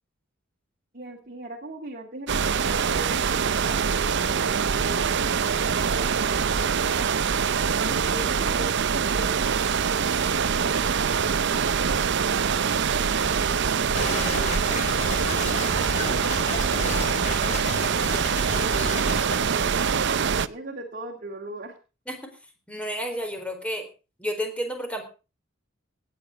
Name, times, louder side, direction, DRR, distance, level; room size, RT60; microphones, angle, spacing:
voice 1, 0.9-7.1 7.8-11.0 11.5-14.8 15.6-17.7 18.4-19.2 19.5-21.8, right 1 dB, 45° right, 1 dB, 2.2 m, -40 dB
sound 1, 2.3-20.5, right 6 dB, 60° right, 0.7 m, -24 dB
sound 2, 13.9-19.3, left 2 dB, 35° left, 5.2 m, -32 dB
voice 2, 22.7-23.9 24.2-25.0, equal, 5° left, 5 dB, 4.0 m, -30 dB
18.0 x 9.4 x 5.7 m, 0.34 s
head